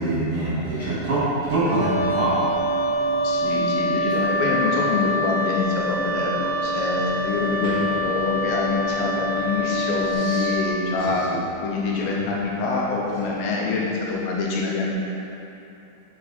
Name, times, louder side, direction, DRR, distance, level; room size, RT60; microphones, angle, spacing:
voice 1, 0.0-2.4 7.6-7.8 10.1-10.5 11.3-11.4, right 2 dB, 55° right, -12 dB, 1.9 m, -24 dB
sound 1, 0.7-10.1, right 3 dB, 80° right, 1.5 m, -36 dB
Wind instrument woodwind instrument, 1.6-10.7, left 1 dB, 55° left, 1.6 m, -25 dB
voice 2, 3.2-11.3 11.6-14.9, left 3 dB, 80° left, -3 dB, 2.9 m, -25 dB
8.5 x 5.3 x 4.0 m, 2.9 s
omnidirectional pair, 5.3 m